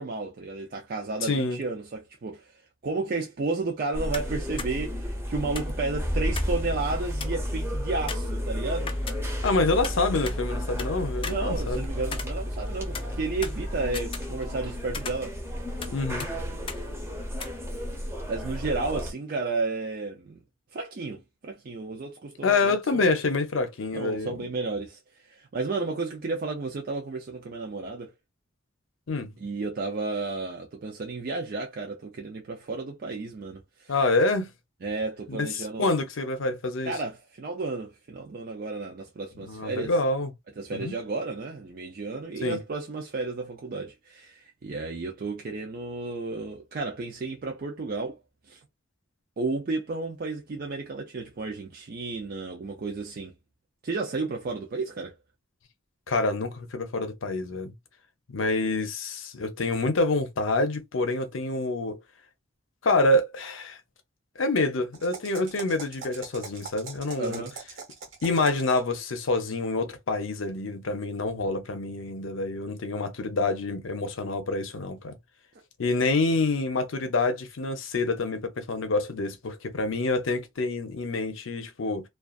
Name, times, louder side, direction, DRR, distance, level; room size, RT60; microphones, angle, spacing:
voice 1, 0.0-2.6 2.8-8.9 11.2-15.4 18.3-20.4 20.7-23.0 23.9-28.1 29.4-33.9 34.8-35.9 36.9-39.9 40.6-48.2 48.5-48.6 49.4-53.3 53.8-55.1 67.2-67.5, right 3 dB, 50° right, 0.4 m, -32 dB
voice 2, 1.2-1.6 9.4-11.9 15.9-16.3 22.4-24.3 29.1-29.3 33.9-34.5 35.3-37.0 39.4-40.3 40.7-41.0 42.4-42.6 56.1-57.7 58.3-62.0 62.8-63.8 64.4-67.4 68.2-75.2 75.8-82.1, left 3 dB, 80° left, 0.6 m, -27 dB
sound 1, 3.9-19.1, equal, 15° right, 0.7 m, -32 dB
sound 2, 4.1-4.3 4.6-4.7 5.6-6.6 6.9-7.0 7.2-7.5 8.1-9.5 9.8-10.9 11.2-12.7 12.9-14.7 14.9-15.9 16.2-16.3 16.7-16.8 17.4-17.5, left 5 dB, 25° left, 0.4 m, -38 dB
sound 3, 64.9-68.9, right 4 dB, 75° right, 1.1 m, -42 dB
2.4 x 2.3 x 2.3 m
head